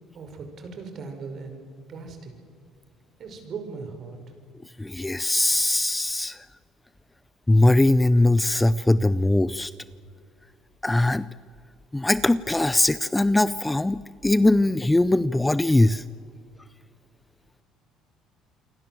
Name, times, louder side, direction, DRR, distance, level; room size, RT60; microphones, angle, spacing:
voice 1, 0.1-1.6 1.9-2.3 3.2-4.2, right 4 dB, 45° right, 6 dB, 5.4 m, -38 dB
voice 2, 4.8-6.4 7.5-9.7 10.8-11.3 11.9-16.0, left 2 dB, 10° left, 16 dB, 0.6 m, -21 dB
28.5 x 23.5 x 7.7 m, 2.2 s
cardioid pair, 120°, 0 cm